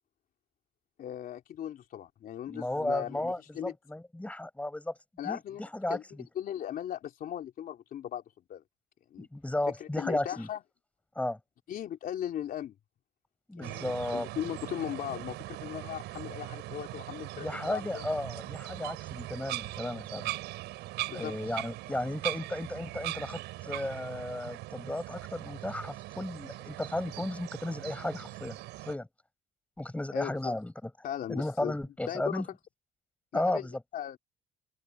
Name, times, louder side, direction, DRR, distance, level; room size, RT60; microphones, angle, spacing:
voice 1, 1.0-3.7 5.2-5.6 5.9-6.0 6.4-8.2 8.5-8.6 9.1-9.3 9.8-10.6 11.7-12.8 13.5-18.1 21.1-21.3 30.1-30.5 31.0-31.7 32.1-32.4 33.3-34.2, left 10 dB, 60° left, 3.6 m, -38 dB
voice 2, 2.5-4.9 5.2-6.3 9.2-10.5 11.2-11.4 13.5-14.3 17.4-20.3 21.1-28.6 28.9-29.1 29.8-30.9 31.3-32.5 33.3-33.8, left 1 dB, 10° left, 7.5 m, -34 dB
sound 1, 13.6-29.0, right 18 dB, 90° right, 7.0 m, -40 dB
open air
cardioid pair, 110°, 17 cm